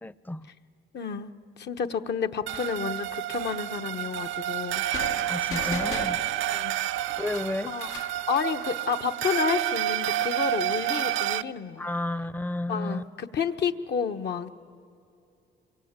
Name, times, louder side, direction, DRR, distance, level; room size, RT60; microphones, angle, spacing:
voice 1, 0.0-0.5 5.3-6.2 7.2-7.8 11.8-13.0, left 1 dB, 10° left, 17 dB, 0.7 m, -31 dB
voice 2, 0.9-1.3 1.6-4.8 6.5-6.8 7.2-7.3 7.7-7.9 8.3-11.9 12.7-14.5, left 6 dB, 60° left, 7 dB, 1.1 m, -30 dB
sound 1, 2.5-11.4, right 13 dB, 80° right, 0.5 m, -29 dB
sound 2, 4.9-8.3, left 7 dB, 80° left, 1.3 m, -38 dB
27.5 x 23.0 x 8.9 m, 2.6 s
cardioid pair, 90°, 20 cm